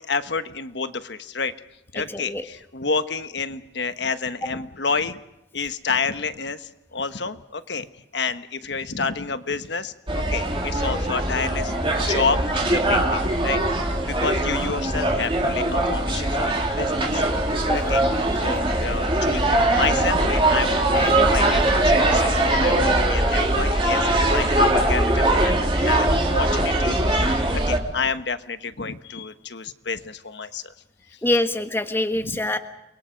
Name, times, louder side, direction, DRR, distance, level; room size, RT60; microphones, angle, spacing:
voice 1, 0.0-1.5 1.9-5.2 5.5-7.9 8.1-17.2 17.7-18.0 18.3-30.7 32.2-32.4, left 5 dB, 70° left, 10 dB, 1.3 m, -29 dB
voice 2, 2.1-2.4 17.7-17.8 31.2-32.6, left 1 dB, 15° left, 7 dB, 1.4 m, -24 dB
sound 1, 10.1-27.8, right 1 dB, 30° right, 3.2 m, -21 dB
29.5 x 23.0 x 5.2 m, 0.88 s
head